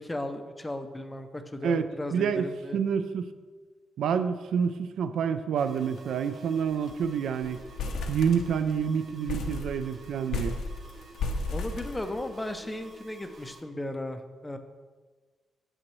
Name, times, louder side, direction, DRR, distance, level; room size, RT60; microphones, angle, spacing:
voice 1, 0.0-2.8 11.5-14.6, left 1 dB, 10° left, 8 dB, 0.4 m, -36 dB
voice 2, 2.1-3.3 4.0-7.6 8.1-10.6, right 7 dB, 75° right, 11 dB, 0.4 m, -28 dB
sound 1, 5.6-13.6, right 3 dB, 40° right, 0.9 m, -51 dB
sound 2, 5.8-6.0 6.3-6.4 6.7-7.1 7.4-8.8 9.3-12.6, left 3 dB, 80° left, 0.7 m, -34 dB
8.7 x 6.5 x 3.1 m, 1.4 s
wide cardioid pair, 165°, 0 cm